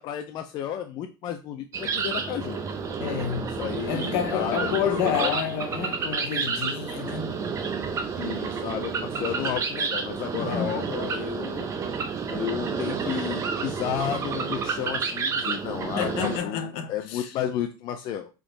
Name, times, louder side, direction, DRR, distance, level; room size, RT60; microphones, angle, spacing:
voice 1, 0.0-2.6 3.6-5.4 8.2-11.7 12.3-18.3, left 10 dB, 40° left, 0.4 m, -32 dB
sound 1, 1.7-16.4, right 5 dB, 25° right, 0.7 m, -30 dB
voice 2, 3.0-3.6 3.9-7.3 10.3-10.8 16.0-17.3, left 8 dB, 60° left, 0.8 m, -29 dB
3.6 x 2.9 x 3.8 m
supercardioid pair, 135°, 11 cm